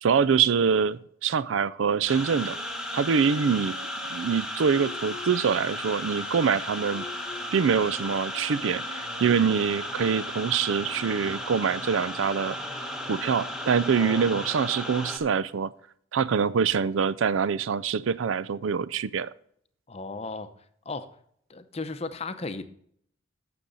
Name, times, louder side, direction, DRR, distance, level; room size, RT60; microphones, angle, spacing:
voice 1, 0.0-2.6 2.9-3.8 4.1-7.0 7.5-12.6 13.1-15.7 16.1-19.3, right 6 dB, 85° right, 18 dB, 0.4 m, -25 dB
Wind instrument woodwind instrument, 2.0-10.4, left 1 dB, 65° right, 3.1 m, -47 dB
sound 1, 2.1-15.2, left 1 dB, 5° right, 1.1 m, -35 dB
voice 2, 13.9-14.2 19.9-20.5 20.8-21.1 21.5-22.6, left 3 dB, 35° left, 10 dB, 0.7 m, -35 dB
11.5 x 7.0 x 4.0 m, 0.66 s
head